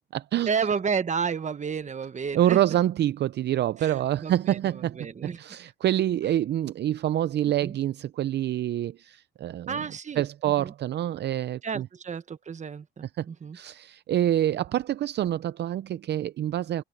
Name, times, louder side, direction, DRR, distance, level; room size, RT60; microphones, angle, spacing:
voice 1, 0.5-2.6 3.8-5.4 7.6-7.8 9.7-10.7 11.6-13.6, right 6 dB, 35° right, 1.2 m, -31 dB
voice 2, 2.3-5.0 5.4-9.8 10.2-11.9 13.2-13.3 13.5-16.8, right 12 dB, 60° right, 0.5 m, -26 dB
cardioid pair, 90°, 20 cm